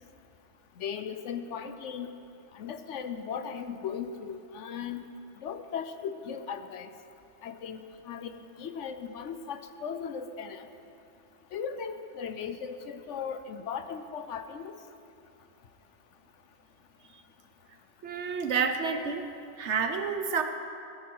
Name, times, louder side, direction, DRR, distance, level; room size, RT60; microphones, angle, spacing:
voice 1, 0.8-2.1 2.5-5.1 5.4-6.9 7.4-10.6 11.5-14.7, left 7 dB, 70° left, 9 dB, 1.0 m, -37 dB
voice 2, 18.0-19.3 19.6-20.4, right 5 dB, 65° right, 7 dB, 1.1 m, -29 dB
17.0 x 10.5 x 4.7 m, 2.6 s
omnidirectional pair, 1.3 m